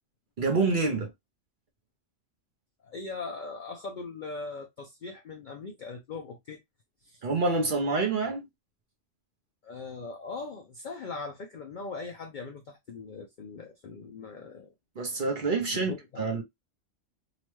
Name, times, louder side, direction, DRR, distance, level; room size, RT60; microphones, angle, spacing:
voice 1, 0.4-1.1 7.2-8.5 15.0-16.4, right 3 dB, 50° right, 0.7 m, -27 dB
voice 2, 2.8-6.6 7.0-7.2 9.6-14.7 15.7-16.2, left 4 dB, 65° left, 0.4 m, -40 dB
2.9 x 2.1 x 3.0 m
omnidirectional pair, 1.3 m